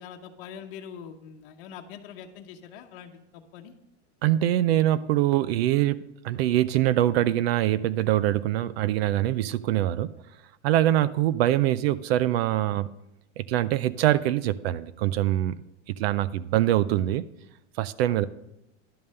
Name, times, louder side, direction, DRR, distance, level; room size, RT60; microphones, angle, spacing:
voice 1, 0.0-3.7, left 8 dB, 50° left, 3 dB, 1.0 m, -43 dB
voice 2, 4.2-10.1 10.6-12.9 13.4-15.6 15.9-17.3 17.8-18.3, right 13 dB, 60° right, 17 dB, 0.5 m, -24 dB
11.5 x 5.5 x 6.5 m, 0.86 s
supercardioid pair, 170°, 36 cm